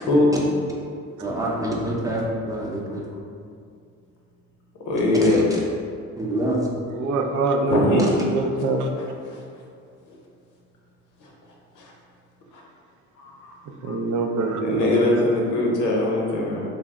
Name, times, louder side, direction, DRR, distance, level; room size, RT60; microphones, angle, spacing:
voice 1, 1.2-3.1 5.2-5.6 6.2-6.7, right 1 dB, 10° right, -3 dB, 0.6 m, -26 dB
voice 2, 4.9-5.4 7.6-8.0 9.0-9.4 11.2-11.3 11.8-11.9 12.5-12.6 13.2-13.6 13.8-14.0 14.6-16.6, left 2 dB, 80° left, -2 dB, 0.7 m, -22 dB
voice 3, 6.9-8.0 8.3-8.9 13.8-15.0, right 3 dB, 75° right, 3 dB, 0.5 m, -24 dB
3.3 x 2.0 x 3.5 m, 2.3 s
cardioid pair, 90°, 30 cm